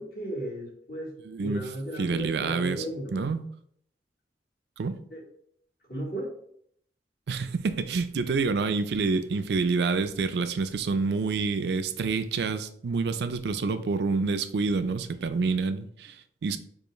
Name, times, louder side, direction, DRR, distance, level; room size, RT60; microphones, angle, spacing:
voice 1, 0.0-1.1 1.4-3.2 5.1-5.2 5.9-6.3, right 1 dB, 55° left, -4 dB, 1.9 m, -35 dB
voice 2, 1.2-1.6 2.0-2.8 3.1-3.4 4.8-5.0 7.3-16.6, right 4 dB, 70° right, 11 dB, 0.4 m, -28 dB
6.8 x 2.5 x 3.1 m, 0.66 s
head